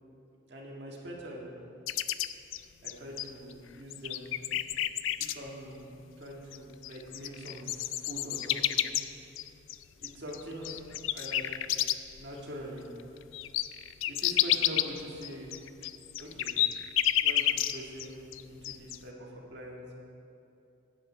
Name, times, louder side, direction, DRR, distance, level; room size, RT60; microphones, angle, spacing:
voice 1, 0.5-1.5 2.8-4.2 4.7-4.8 5.2-5.8 6.2-8.8 10.0-10.8 11.1-11.5 12.2-12.8 14.1-15.5 16.2-16.5 17.2-20.0, equal, 60° right, -2 dB, 1.8 m, -43 dB
sound 1, 1.9-3.5 3.9-5.3 6.5-6.6 6.8-12.2 12.6-12.7 13.0-18.1 18.3-19.0, left 13 dB, 90° left, 0.4 m, -30 dB
11.0 x 9.6 x 4.3 m, 2.7 s
head